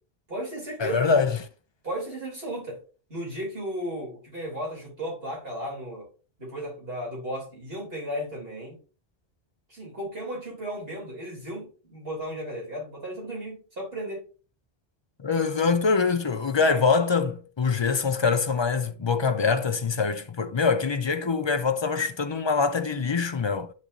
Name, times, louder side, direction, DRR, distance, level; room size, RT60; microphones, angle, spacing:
voice 1, 0.3-1.1 1.8-2.8 3.1-6.1 6.4-8.8 9.7-14.3, equal, 65° right, 3.3 m, -35 dB
voice 2, 0.8-1.4 15.2-23.7, left 5 dB, 35° left, 0.5 m, -24 dB
11.5 x 4.1 x 2.6 m
omnidirectional pair, 1.1 m